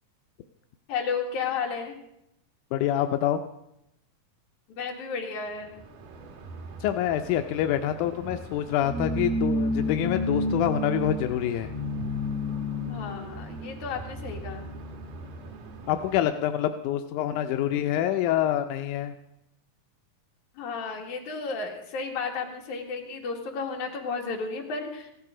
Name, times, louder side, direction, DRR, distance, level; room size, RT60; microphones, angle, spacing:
voice 1, 0.9-2.0 4.8-5.8 12.9-14.7 20.5-25.1, left 5 dB, 60° left, 1 dB, 3.1 m, -33 dB
voice 2, 2.7-3.4 6.8-11.7 15.9-19.1, left 11 dB, 80° left, 7 dB, 1.9 m, -26 dB
sound 1, 5.8-16.2, left 1 dB, 90° right, 3.2 m, -32 dB
15.5 x 12.5 x 5.0 m, 0.83 s
omnidirectional pair, 4.0 m